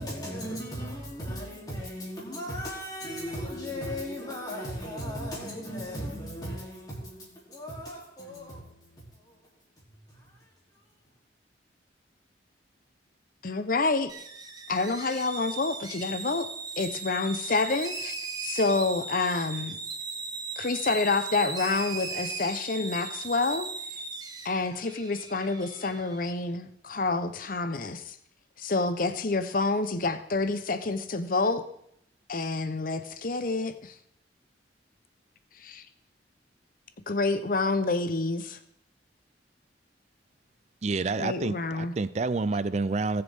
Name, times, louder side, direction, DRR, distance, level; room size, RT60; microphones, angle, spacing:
voice 1, 0.0-10.5, equal, 20° left, 3.0 m, -37 dB
voice 2, 13.4-14.1 14.7-16.5 16.8-18.1 18.4-19.8 20.6-23.7 24.4-28.2 28.6-31.6 32.3-33.9 35.6-35.8 37.1-38.6 41.2-41.9, left 3 dB, 50° left, 0.8 m, -28 dB
sound 1, 14.1-26.3, right 4 dB, 20° right, 1.0 m, -38 dB
voice 3, 40.8-43.2, right 3 dB, 40° right, 0.4 m, -28 dB
19.0 x 6.8 x 3.6 m
head